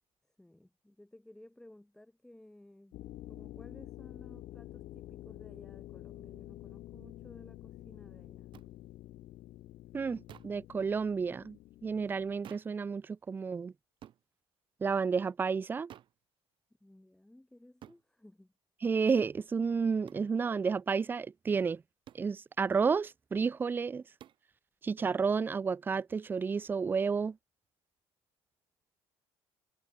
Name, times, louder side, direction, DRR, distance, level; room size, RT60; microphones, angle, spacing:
voice 1, 0.2-3.0 3.3-8.5 16.8-18.5, left 1 dB, 5° left, 7.1 m, -57 dB
sound 1, 2.9-12.4, left 15 dB, 65° left, 2.8 m, -49 dB
sound 2, 8.5-8.7 10.3-10.6 12.4-12.8 14.0-14.2 15.9-16.2 17.8-18.0 20.1-20.3 22.1-22.3 24.2-24.5, right 11 dB, 50° right, 6.2 m, -52 dB
voice 2, 9.9-13.7 14.8-15.9 18.8-21.8 22.2-24.0 24.8-27.4, right 5 dB, 20° right, 0.5 m, -31 dB
cardioid pair, 150°, 11 cm